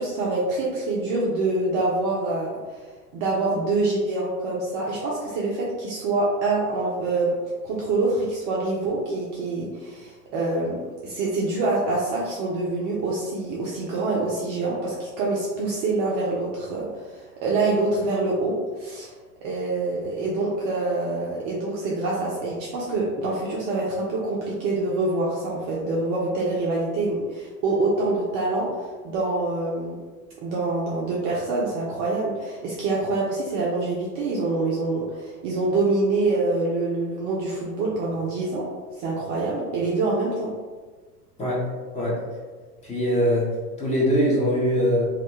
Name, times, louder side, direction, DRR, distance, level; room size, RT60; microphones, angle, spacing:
voice 1, 0.0-2.8 3.1-7.4 7.6-19.1 19.4-30.0 30.4-38.7 39.0-40.6, right 2 dB, 35° right, -5 dB, 0.4 m, -26 dB
voice 2, 42.8-43.5 43.8-45.1, equal, 15° left, -5 dB, 0.6 m, -22 dB
2.3 x 2.1 x 2.9 m, 1.4 s
hypercardioid pair, 100°, 47 cm